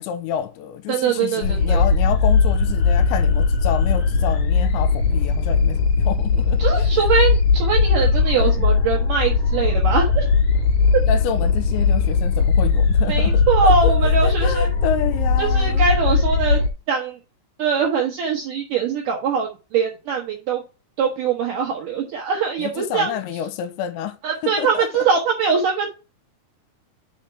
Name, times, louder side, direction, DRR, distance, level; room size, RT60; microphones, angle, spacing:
voice 1, 0.0-7.1 8.0-8.1 8.4-8.6 11.1-15.9 22.6-24.2 24.4-25.0, left 9 dB, 90° left, 3.0 m, -29 dB
voice 2, 0.9-1.8 6.6-10.3 10.9-11.0 13.1-14.7 15.4-16.6 16.9-17.2 17.6-20.6 21.0-23.1 24.2-25.9, right 6 dB, 75° right, 1.9 m, -22 dB
sound 1, 1.4-16.7, left 4 dB, 55° left, 2.4 m, -18 dB
5.8 x 5.0 x 5.8 m
omnidirectional pair, 5.3 m